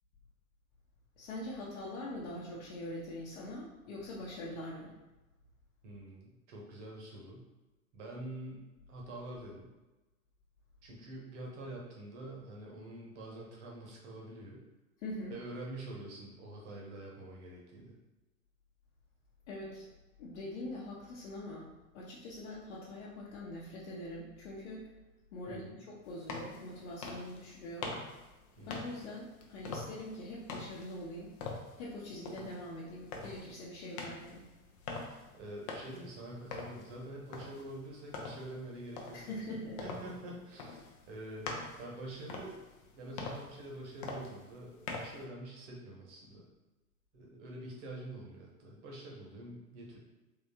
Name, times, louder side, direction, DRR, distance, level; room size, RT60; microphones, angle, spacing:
voice 1, 1.2-4.9 15.0-15.3 19.5-19.8 20.2-24.8 25.3-27.9 28.7-31.3 31.8-34.5 39.1-39.8, left 1 dB, 50° left, -6 dB, 0.8 m, -43 dB
voice 2, 5.8-7.5 7.9-9.7 10.8-14.6 15.3-17.9 25.5-25.8 28.6-28.9 35.1-42.6 42.9-46.5 47.1-50.0, right 1 dB, 50° right, -2 dB, 1.2 m, -46 dB
sound 1, 26.0-45.2, left 3 dB, 25° left, 0.4 m, -45 dB
3.7 x 3.1 x 2.9 m, 1.1 s
figure-of-eight pair, 95°, 44 cm